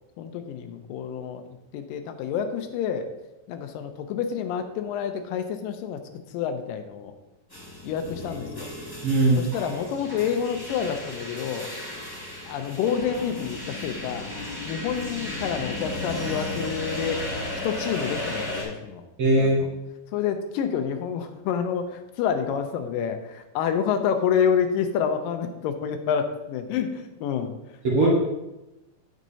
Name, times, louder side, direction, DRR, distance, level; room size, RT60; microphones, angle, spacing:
voice 1, 0.2-1.4 1.7-3.1 3.5-6.0 6.3-7.1 7.8-8.7 9.4-11.7 12.5-14.3 14.7-17.2 17.6-19.0 19.4-19.7 20.1-27.5, left 7 dB, 90° left, 7 dB, 2.3 m, -28 dB
sound 1, 7.5-18.6, left 1 dB, 10° left, 1.5 m, -34 dB
voice 2, 9.0-9.4 19.2-19.6 27.8-28.1, right 2 dB, 55° right, -5 dB, 1.8 m, -19 dB
9.2 x 6.5 x 2.8 m, 0.97 s
omnidirectional pair, 3.9 m